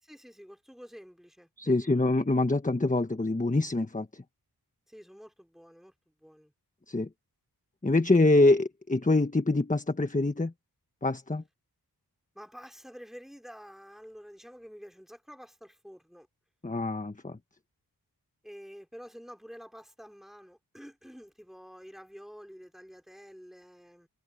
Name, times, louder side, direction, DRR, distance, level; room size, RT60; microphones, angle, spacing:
voice 1, 0.0-2.0 4.9-6.5 12.4-16.3 18.4-24.1, equal, ahead, 5.1 m, -49 dB
voice 2, 1.6-4.2 6.9-7.1 7.8-10.5 11.0-11.4 16.6-17.4, left 2 dB, 20° left, 1.3 m, -25 dB
wide cardioid pair, 65°, 38 cm